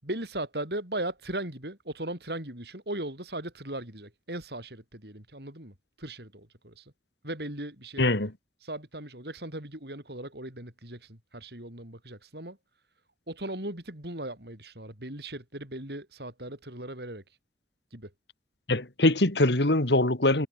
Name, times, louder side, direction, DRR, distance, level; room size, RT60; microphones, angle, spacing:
voice 1, 0.0-6.9 7.2-8.1 8.6-12.6 13.3-17.2 17.9-18.1, right 1 dB, 70° right, 6.8 m, -38 dB
voice 2, 8.0-8.3 18.7-20.5, left 2 dB, 80° left, 2.6 m, -23 dB
head